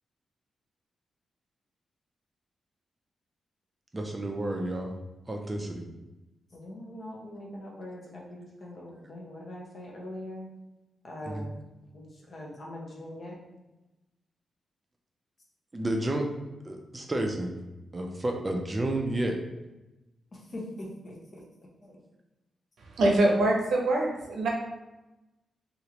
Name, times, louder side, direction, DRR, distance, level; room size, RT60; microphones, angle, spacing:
voice 1, 3.9-5.0 5.3-5.8 11.2-11.5 15.7-16.2 16.6-17.5 17.9-19.4, right 1 dB, 20° right, 2 dB, 0.4 m, -30 dB
voice 2, 6.5-10.5 11.0-11.6 11.9-13.4 20.3-21.2 21.8-22.0, left 1 dB, 40° left, -3 dB, 0.7 m, -42 dB
voice 3, 23.0-24.5, right 2 dB, 80° right, -1 dB, 0.7 m, -24 dB
3.0 x 2.4 x 2.8 m, 1.0 s
wide cardioid pair, 140°, 0 cm